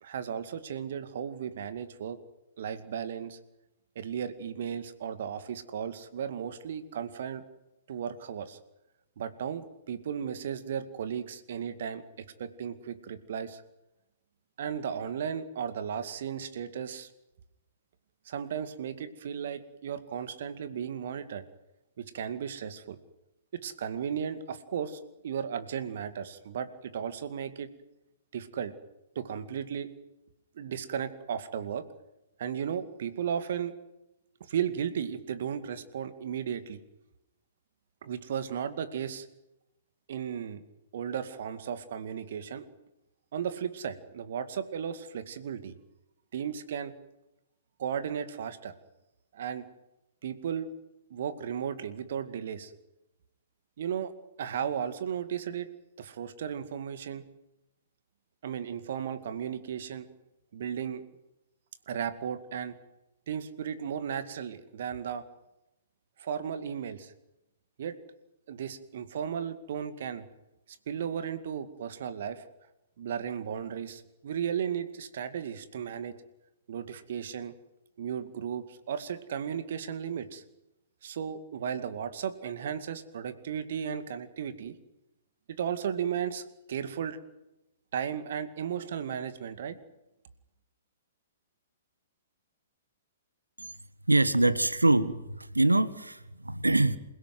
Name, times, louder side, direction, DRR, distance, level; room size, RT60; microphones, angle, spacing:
voice 1, 0.0-2.2 2.6-3.4 4.0-7.4 7.9-8.6 9.2-13.6 14.6-17.1 18.3-21.4 22.0-23.0 23.5-27.7 28.3-28.7 29.2-29.9 30.6-31.8 32.4-33.7 34.4-36.8 38.0-39.3 40.1-40.6 40.9-42.7 43.3-45.7 46.3-46.9 47.8-48.7 49.3-49.6 50.2-50.7 51.1-52.7 53.8-54.1 54.4-55.7 56.0-57.2 58.4-60.1 60.5-61.0 61.9-62.7 63.3-65.2 66.2-67.1 67.8-68.0 68.5-70.2 70.9-72.4 73.0-76.1 76.7-77.5 78.0-80.4 81.0-84.7 85.5-87.2 87.9-89.8, right 8 dB, 55° right, 12 dB, 2.2 m, -35 dB
voice 2, 94.1-97.0, right 2 dB, 85° right, 15 dB, 1.5 m, -24 dB
28.0 x 17.0 x 9.4 m, 0.94 s
figure-of-eight pair, 115°, 0 cm